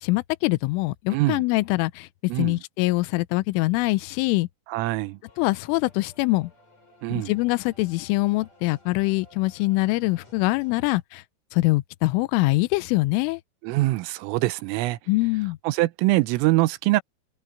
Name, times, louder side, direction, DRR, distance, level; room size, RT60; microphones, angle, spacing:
voice 1, 0.0-2.1 2.4-4.5 5.4-6.5 7.1-11.2 11.5-13.4 15.1-15.6, left 22 dB, 85° left, 3.1 m, -24 dB
voice 2, 1.1-1.4 2.3-2.6 4.7-5.2 7.0-7.3 13.6-15.0 15.7-17.0, right 19 dB, 90° right, 3.4 m, -23 dB
sound 1, 5.3-11.0, left 1 dB, 35° left, 6.7 m, -56 dB
omnidirectional pair, 5.8 m